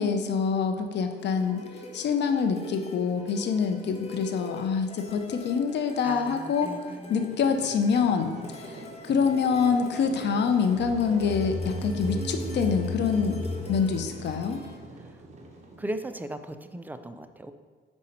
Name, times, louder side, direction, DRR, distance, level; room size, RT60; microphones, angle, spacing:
voice 1, 0.0-1.6 1.9-6.7 7.1-13.4 13.7-14.6, left 6 dB, 60° left, 6 dB, 0.6 m, -26 dB
sound 1, 1.1-14.8, left 1 dB, 30° left, 1.0 m, -43 dB
voice 2, 6.0-7.2 8.3-8.6 15.0-15.2 15.8-17.5, right 1 dB, 10° right, 9 dB, 0.4 m, -38 dB
sound 2, 7.1-16.2, right 3 dB, 35° right, 1.0 m, -45 dB
sound 3, 10.8-15.3, left 2 dB, 15° left, 1.3 m, -35 dB
5.3 x 4.8 x 4.3 m, 1.5 s
cardioid pair, 90°, 20 cm